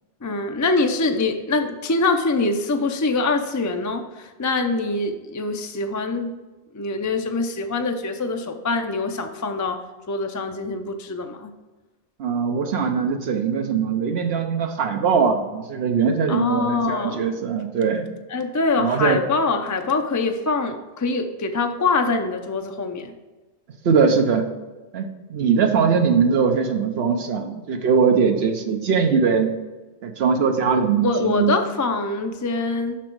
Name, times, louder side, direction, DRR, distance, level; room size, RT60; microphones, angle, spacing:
voice 1, 0.2-6.3 6.7-9.8 10.1-11.5 16.3-17.3 18.3-23.1 30.7-33.0, left 3 dB, 25° left, 5 dB, 0.4 m, -24 dB
voice 2, 12.2-18.1 18.8-19.2 23.8-24.4 24.9-29.5 30.0-31.6, right 6 dB, 80° right, 4 dB, 0.9 m, -21 dB
6.1 x 5.8 x 4.5 m, 1.2 s
omnidirectional pair, 1.1 m